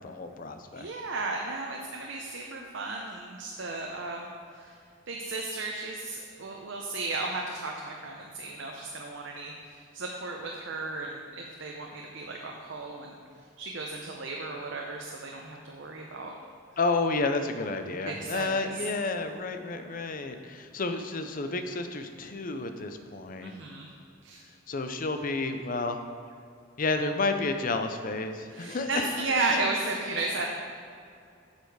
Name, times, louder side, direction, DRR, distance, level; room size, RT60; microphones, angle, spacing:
voice 1, 0.0-0.9 16.8-23.6 24.7-26.0 26.8-29.1 29.5-29.6, left 3 dB, 45° left, 7 dB, 0.6 m, -31 dB
voice 2, 0.7-4.8 5.1-13.2 13.6-16.3 18.0-18.8 23.4-23.9 24.2-24.4 28.5-30.5, right 3 dB, 70° right, 0 dB, 0.7 m, -34 dB
8.0 x 6.8 x 4.8 m, 2.4 s
head